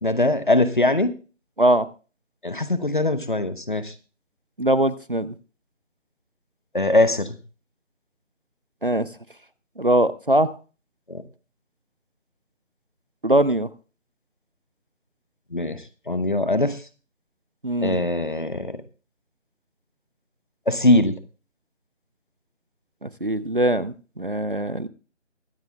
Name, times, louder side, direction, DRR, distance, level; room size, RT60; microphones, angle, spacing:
voice 1, 0.0-1.1 2.4-3.9 6.7-7.4 11.1-11.2 15.5-15.8 16.1-16.8 17.8-18.8 20.7-21.2, left 2 dB, 40° left, 13 dB, 1.0 m, -21 dB
voice 2, 4.6-5.3 8.8-9.1 9.8-10.5 13.2-13.7 17.6-18.0 23.0-24.9, right 1 dB, 45° right, 17 dB, 0.6 m, -21 dB
23.5 x 9.2 x 2.3 m, 0.35 s
figure-of-eight pair, 180°, 38 cm